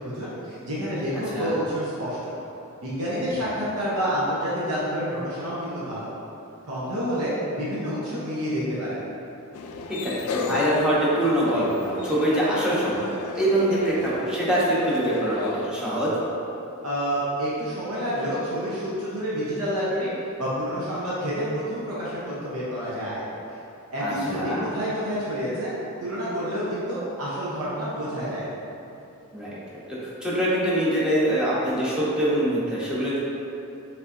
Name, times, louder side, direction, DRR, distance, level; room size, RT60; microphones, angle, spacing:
voice 1, 0.0-2.3 2.8-6.1 6.7-9.1 16.8-20.1 20.4-23.3 23.9-25.7 26.0-28.5, equal, 75° right, -8 dB, 0.8 m, -28 dB
sound 1, 9.5-15.7, left 4 dB, 75° left, 0.3 m, -34 dB
voice 2, 9.9-16.1 24.0-24.6 29.3-29.6 30.0-33.2, right 1 dB, 5° right, -8 dB, 0.9 m, -24 dB
5.4 x 3.4 x 2.6 m, 2.8 s
head